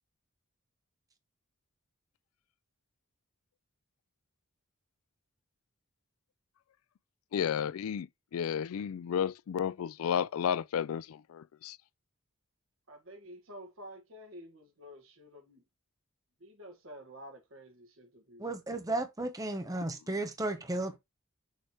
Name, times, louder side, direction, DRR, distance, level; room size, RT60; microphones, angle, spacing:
voice 1, 7.3-8.1 8.3-11.8, left 8 dB, 75° left, 0.3 m, -32 dB
voice 2, 12.9-15.6 16.4-18.4, equal, 70° right, 1.8 m, -50 dB
voice 3, 18.4-21.0, right 2 dB, 15° right, 0.8 m, -34 dB
6.6 x 3.3 x 4.4 m
head